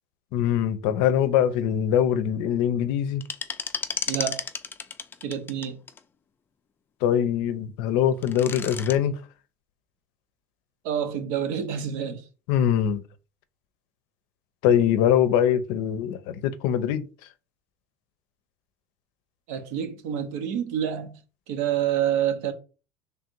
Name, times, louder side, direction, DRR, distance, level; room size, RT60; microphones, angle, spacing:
voice 1, 0.3-3.2 7.0-9.2 12.5-13.0 14.6-17.1, left 9 dB, 70° left, 0.5 m, -23 dB
Plectrum-Nails over Keyboard, 3.2-6.0 8.0-9.0, left 6 dB, 25° left, 0.4 m, -32 dB
voice 2, 4.1-4.4 5.2-5.8 10.8-12.2 19.5-21.2 21.5-22.5, right 9 dB, 80° right, 0.9 m, -27 dB
3.3 x 2.5 x 4.4 m
supercardioid pair, 105°, 9 cm